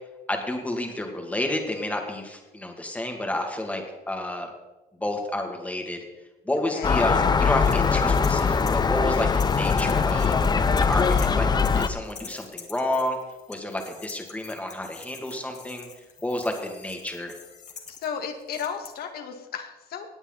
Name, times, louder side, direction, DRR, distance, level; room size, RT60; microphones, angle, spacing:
voice 1, 0.3-4.5 5.0-6.0 6.5-10.4 10.8-13.2 13.5-15.9 16.2-17.3, left 1 dB, 10° left, 3 dB, 2.3 m, -30 dB
Gull seagull, 6.8-11.9, left 5 dB, 25° left, 0.7 m, -21 dB
sound 1, 7.6-11.3 11.6-18.9, left 6 dB, 45° left, 2.4 m, -45 dB
voice 2, 17.9-20.1, left 7 dB, 65° left, 5 dB, 1.8 m, -34 dB
18.0 x 8.8 x 4.0 m, 1.1 s
cardioid pair, 110°, 17 cm